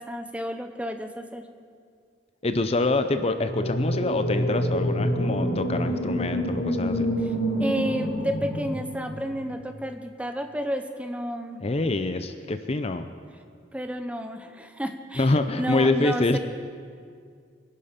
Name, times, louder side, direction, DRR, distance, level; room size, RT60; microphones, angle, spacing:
voice 1, 0.0-1.5 7.2-7.3 7.6-11.6 13.7-16.4, equal, 5° right, 7 dB, 0.9 m, -31 dB
voice 2, 2.4-7.1 11.6-13.1 15.2-16.4, left 2 dB, 35° left, 9 dB, 0.6 m, -25 dB
sound 1, 3.4-9.5, equal, 90° left, 2.2 m, -27 dB
24.5 x 11.5 x 5.2 m, 2.1 s
head